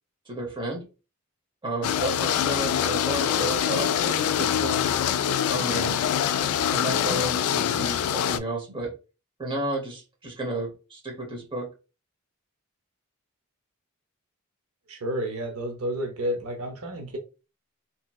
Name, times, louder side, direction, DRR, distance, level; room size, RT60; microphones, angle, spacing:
voice 1, 0.3-0.9 1.6-4.9 5.5-6.1 6.7-8.9 9.4-11.7, right 1 dB, 25° right, 1.0 m, -32 dB
sound 1, 1.8-8.4, left 9 dB, 85° left, 0.3 m, -25 dB
voice 2, 14.9-17.2, equal, 80° right, 0.7 m, -31 dB
3.0 x 2.8 x 2.3 m
head